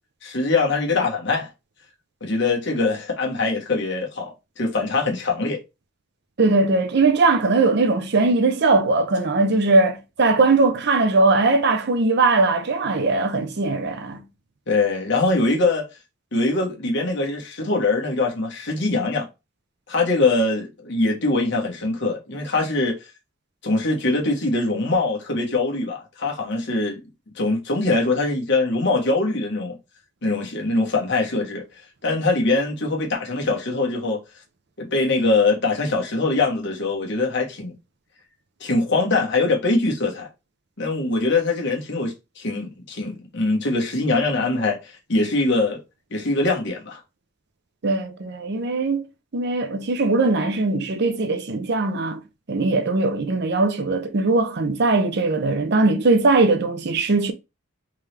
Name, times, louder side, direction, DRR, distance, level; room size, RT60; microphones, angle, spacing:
voice 1, 0.2-1.5 2.2-5.6 14.7-15.8 16.3-19.3 19.9-22.9 23.6-27.0 27.3-29.8 30.2-31.6 32.0-34.2 34.8-37.7 38.6-40.3 40.8-45.8 46.1-47.0, left 3 dB, 60° left, 1.3 m, -22 dB
voice 2, 6.4-14.2 47.8-49.0 49.3-52.2 52.5-57.3, right 3 dB, 55° right, 0.6 m, -20 dB
3.6 x 3.0 x 3.3 m
head